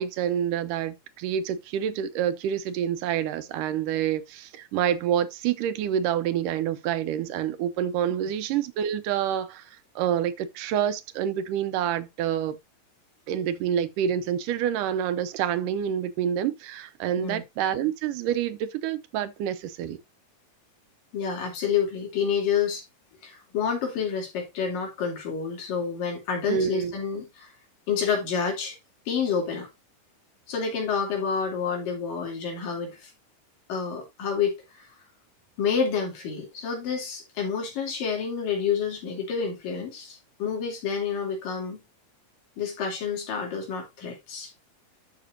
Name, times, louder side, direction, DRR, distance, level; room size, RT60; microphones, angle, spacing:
voice 1, 0.0-12.6 13.3-20.0 26.5-26.9, right 9 dB, 80° right, 2.3 m, -27 dB
voice 2, 21.1-22.8 23.2-27.5 27.9-28.8 29.1-29.7 30.5-33.1 33.7-34.8 35.6-41.8 42.6-44.5, left 6 dB, 90° left, 4.6 m, -29 dB
12.0 x 6.0 x 2.6 m
omnidirectional pair, 3.8 m